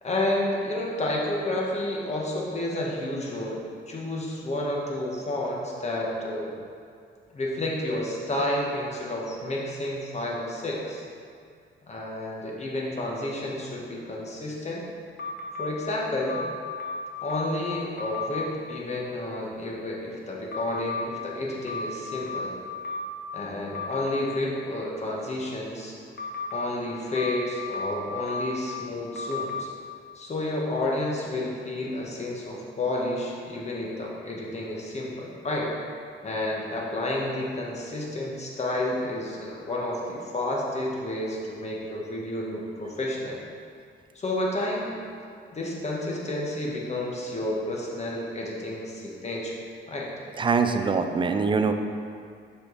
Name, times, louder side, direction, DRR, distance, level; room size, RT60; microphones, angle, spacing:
voice 1, 0.0-3.6 3.9-6.6 7.3-11.0 11.9-14.8 15.6-16.4 17.2-22.5 23.3-26.0 26.5-29.7 30.1-35.7 36.2-43.4 44.1-45.0 45.5-49.6 49.9-50.1, left 1 dB, 35° left, -3 dB, 1.3 m, -30 dB
sound 1, 15.2-15.7 16.3-17.6 18.0-18.4 20.5-21.1 21.7-23.3 23.7-24.2 26.2-26.6 27.2-28.7 29.2-29.6, left 3 dB, 50° left, 0.8 m, -33 dB
voice 2, 50.4-51.7, right 5 dB, 25° right, 7 dB, 0.4 m, -23 dB
5.9 x 5.0 x 4.0 m, 2.3 s
cardioid pair, 90°, 20 cm